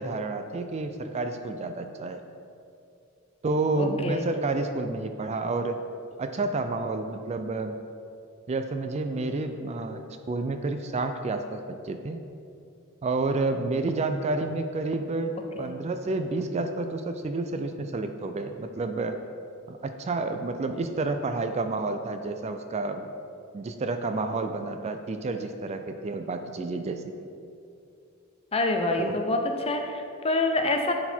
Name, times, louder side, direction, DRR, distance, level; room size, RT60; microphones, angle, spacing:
voice 1, 0.0-2.2 3.4-5.8 6.2-7.8 8.5-12.2 13.0-19.2 19.7-23.1 23.5-27.1 29.0-29.2, right 3 dB, 30° right, 7 dB, 0.3 m, -30 dB
voice 2, 3.8-4.3 15.6-15.7 28.5-30.9, left 2 dB, 25° left, 4 dB, 0.6 m, -26 dB
10.5 x 4.2 x 4.4 m, 2.5 s
head